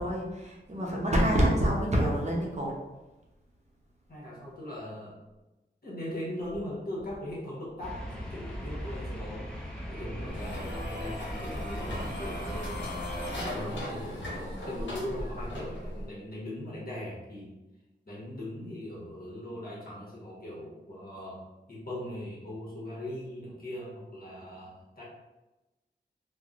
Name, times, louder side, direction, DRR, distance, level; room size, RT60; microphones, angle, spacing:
voice 1, 0.0-2.7, equal, 35° right, -2 dB, 0.7 m, -26 dB
voice 2, 4.1-5.2 5.8-9.5 9.9-13.2 13.5-17.5 18.1-21.4 21.7-25.0, left 1 dB, 55° left, -6 dB, 1.0 m, -39 dB
sound 1, 7.8-13.5, equal, 5° left, 0.7 m, -39 dB
sound 2, 10.3-16.1, left 1 dB, 80° left, 0.8 m, -37 dB
3.2 x 2.0 x 2.4 m, 1.0 s
wide cardioid pair, 55°, 19 cm